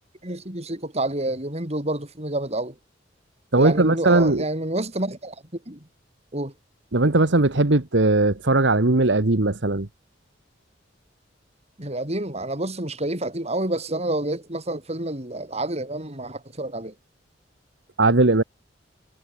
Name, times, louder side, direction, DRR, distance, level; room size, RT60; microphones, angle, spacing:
voice 1, 0.2-2.7 3.6-5.3 5.7-5.8 6.3-6.5 11.8-16.9, right 1 dB, 35° right, 6.7 m, -28 dB
voice 2, 3.5-4.4 6.9-9.9 18.0-18.4, right 2 dB, 75° right, 1.4 m, -19 dB
head